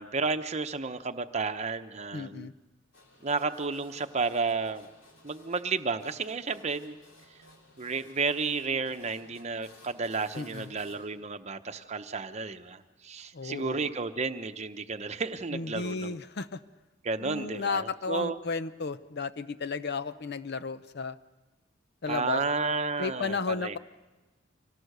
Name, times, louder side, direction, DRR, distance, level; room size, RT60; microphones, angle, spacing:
voice 1, 0.0-2.5 3.2-4.9 5.2-7.0 7.8-16.2 17.0-18.4 22.1-23.8, right 4 dB, 35° right, 8 dB, 0.9 m, -32 dB
voice 2, 2.1-2.5 10.3-10.7 13.3-13.9 15.5-16.6 17.2-21.2 22.0-22.4 23.0-23.8, left 4 dB, 60° left, 13 dB, 0.7 m, -34 dB
sound 1, 2.9-11.1, left 1 dB, 90° left, 3.7 m, -57 dB
25.0 x 17.5 x 6.7 m, 1.2 s
head